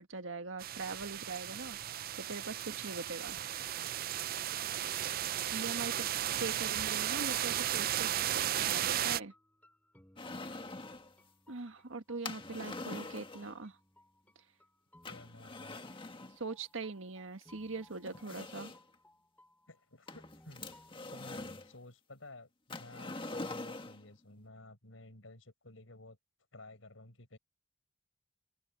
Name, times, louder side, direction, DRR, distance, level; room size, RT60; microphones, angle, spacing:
voice 1, 0.0-1.8 2.2-3.4 5.5-6.1 6.4-8.3 8.6-9.3 11.5-13.8 16.4-18.7, right 3 dB, 90° right, 1.7 m, -42 dB
sound 1, 0.6-9.2, right 11 dB, 50° right, 0.4 m, -35 dB
sound 2, 8.4-20.9, left 1 dB, 10° left, 2.8 m, -64 dB
sound 3, 10.2-11.1 12.2-13.6 15.0-16.4 17.4-17.5 18.0-18.9 20.1-21.7 22.7-24.0, left 2 dB, 25° left, 1.7 m, -44 dB
voice 2, 15.1-15.8 19.7-20.7 21.1-26.2 26.5-27.4, left 2 dB, 85° left, 5.3 m, -54 dB
open air
head